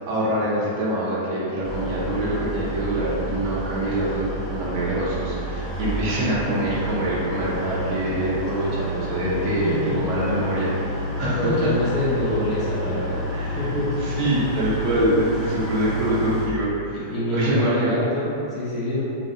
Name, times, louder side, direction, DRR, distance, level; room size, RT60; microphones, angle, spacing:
voice 1, 0.0-11.7 13.3-13.7 14.0-17.0 17.3-17.9, right 1 dB, 40° right, -7 dB, 0.6 m, -25 dB
sound 1, 1.6-16.5, equal, 20° left, 0.4 m, -30 dB
voice 2, 9.6-10.0 11.2-14.2 15.8-16.0 16.9-19.0, left 1 dB, 35° left, -10 dB, 0.8 m, -26 dB
2.7 x 2.0 x 2.5 m, 2.7 s
hypercardioid pair, 135°, 0 cm